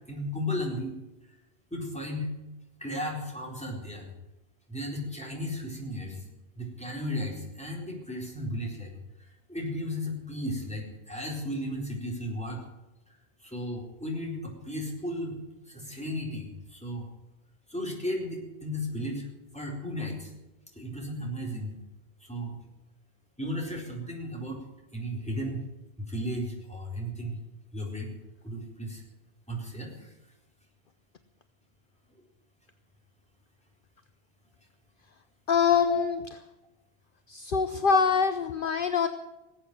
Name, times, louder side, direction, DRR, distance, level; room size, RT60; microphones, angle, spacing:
voice 1, 0.1-1.0 1.7-2.3 2.8-4.1 4.7-12.6 13.4-15.4 15.7-17.1 17.7-19.3 19.5-20.3 20.7-21.7 22.2-22.6 23.4-24.6 24.9-25.6 26.0-27.4 27.7-28.1 28.4-29.0 29.5-30.1 35.9-36.0, left 1 dB, 5° left, -2 dB, 4.2 m, -35 dB
voice 2, 35.5-36.2 37.3-39.1, left 6 dB, 55° left, 10 dB, 0.9 m, -24 dB
19.0 x 8.5 x 8.9 m, 1.0 s
omnidirectional pair, 1.1 m